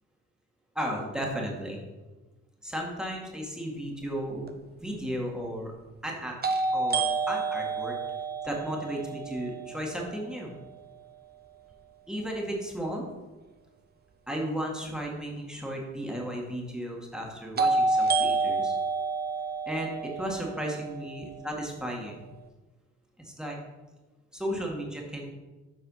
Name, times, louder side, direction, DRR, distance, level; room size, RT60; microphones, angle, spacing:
voice 1, 0.8-1.8 2.6-5.7 6.0-6.4 6.7-7.9 8.4-10.5 12.1-13.0 14.3-18.7 19.7-22.3 23.2-23.6 24.3-25.2, equal, ahead, -2 dB, 1.9 m, -34 dB
sound 1, 4.5-4.6 6.4-10.3 17.6-21.6, right 3 dB, 30° right, 0.8 m, -29 dB
7.7 x 4.8 x 5.7 m, 1.2 s
cardioid pair, 90°, 30 cm